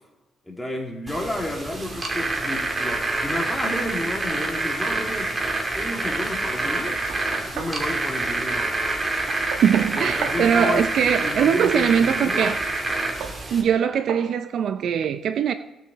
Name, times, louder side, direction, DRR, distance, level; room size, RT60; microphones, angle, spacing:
voice 1, 0.4-5.3 5.7-7.0 7.5-8.7 10.0-12.5, left 1 dB, 10° left, 2.5 m, -31 dB
sound 1, 1.1-13.6, right 2 dB, 25° right, 2.6 m, -27 dB
Knock, 6.6-7.8 9.3-10.4 12.5-12.6 13.2-13.4 14.1-14.3, right 7 dB, 90° right, 1.2 m, -35 dB
voice 2, 9.6-12.6 13.5-15.5, right 8 dB, 65° right, 0.5 m, -21 dB
16.5 x 6.9 x 4.0 m
cardioid pair, 90°, 0 cm